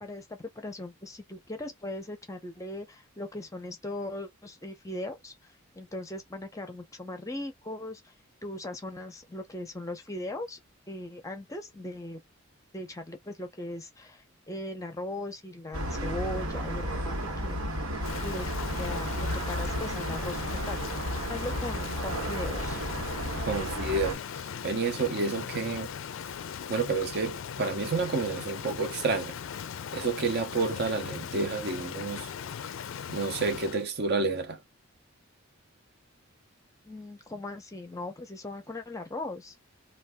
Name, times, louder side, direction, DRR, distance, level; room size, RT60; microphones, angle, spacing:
voice 1, 0.0-8.1 8.4-10.6 10.9-12.2 12.7-17.7 18.2-22.8 36.9-39.5, left 1 dB, 15° left, 0.6 m, -39 dB
sound 1, 15.7-24.1, equal, 90° right, 1.2 m, -33 dB
Rain, 18.0-33.9, left 7 dB, 65° left, 0.4 m, -39 dB
voice 2, 23.5-24.2 24.6-25.9 26.7-29.3 29.9-32.3 33.1-34.6, right 3 dB, 50° right, 0.6 m, -29 dB
2.7 x 2.3 x 3.4 m
head